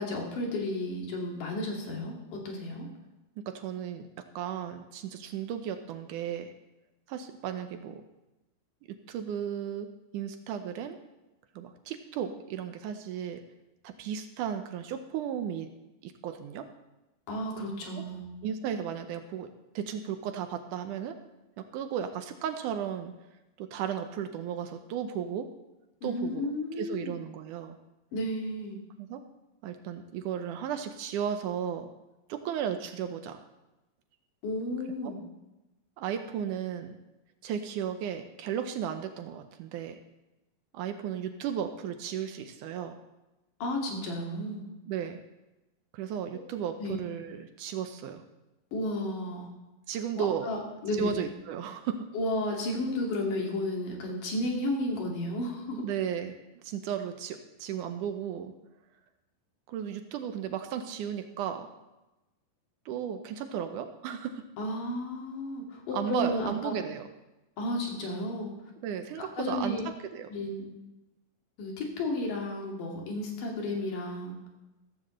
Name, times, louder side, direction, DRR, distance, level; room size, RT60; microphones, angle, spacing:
voice 1, 0.0-2.9 17.3-18.3 26.0-27.2 28.1-28.8 34.4-35.2 43.6-44.6 46.8-47.0 48.7-49.5 50.2-51.2 52.1-55.8 64.6-66.7 67.6-68.5 69.2-69.9 70.3-70.7 71.6-74.4, left 1 dB, 70° left, 0 dB, 3.8 m, -33 dB
voice 2, 3.4-4.1 4.4-6.5 7.1-8.0 8.9-11.0 11.6-13.4 13.8-15.7 16.0-16.7 18.0-18.1 18.4-21.2 21.6-23.1 23.6-25.5 26.0-27.8 29.0-29.3 29.6-31.9 32.3-33.4 35.0-35.1 36.0-37.0 37.4-40.0 40.7-43.0 44.9-45.2 45.9-48.2 49.9-50.5 51.0-52.1 55.8-58.5 59.7-61.7 62.9-64.5 65.9-67.1 68.8-69.8 70.1-70.3, right 8 dB, 75° right, 7 dB, 2.1 m, -35 dB
14.5 x 14.0 x 3.2 m, 1.0 s
omnidirectional pair, 4.0 m